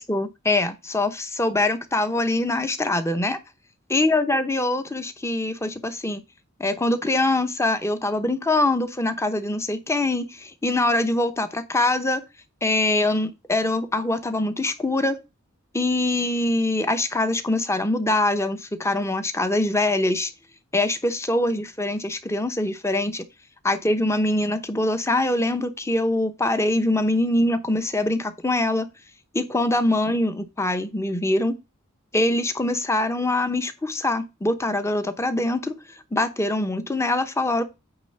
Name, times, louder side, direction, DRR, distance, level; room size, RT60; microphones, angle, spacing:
voice 1, 0.0-3.4 3.9-6.2 6.6-12.2 12.6-15.2 15.7-20.3 20.7-23.2 23.6-28.9 29.3-31.6 32.1-35.7 36.1-37.6, left 2 dB, 15° left, 0.8 m, -23 dB
9.0 x 3.2 x 6.5 m
head